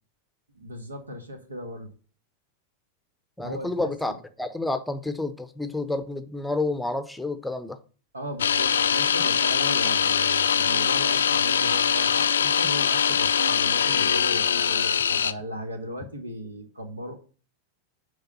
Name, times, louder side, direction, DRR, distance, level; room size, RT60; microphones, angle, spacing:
voice 1, 0.5-1.9 3.4-3.7 4.1-4.2 8.1-17.1, equal, 75° right, 1.6 m, -36 dB
voice 2, 3.4-4.1 4.4-7.8, left 2 dB, 5° left, 0.7 m, -29 dB
sound 1, 8.4-15.3, left 7 dB, 70° left, 0.5 m, -22 dB
9.6 x 3.6 x 7.1 m
figure-of-eight pair, 90°, 0 cm